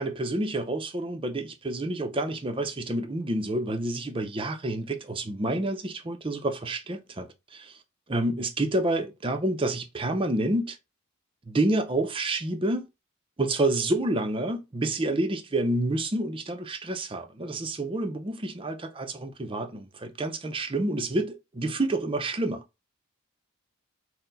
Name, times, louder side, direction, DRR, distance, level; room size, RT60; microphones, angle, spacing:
voice 1, 0.0-7.8 8.1-10.8 11.5-12.9 13.4-22.6, right 2 dB, 25° right, 0.5 m, -28 dB
4.2 x 2.1 x 3.9 m
head